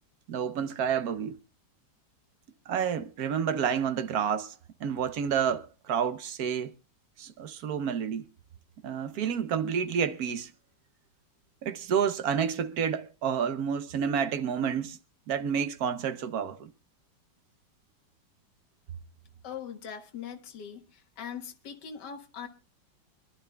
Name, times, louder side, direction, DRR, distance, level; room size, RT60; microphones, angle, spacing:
voice 1, 0.3-1.4 2.7-4.5 4.8-6.7 7.2-8.2 8.8-10.5 11.6-15.0 15.3-16.7, right 7 dB, 60° right, 1.2 m, -29 dB
voice 2, 19.4-22.5, left 8 dB, 65° left, 1.9 m, -41 dB
26.0 x 11.5 x 2.3 m
omnidirectional pair, 2.0 m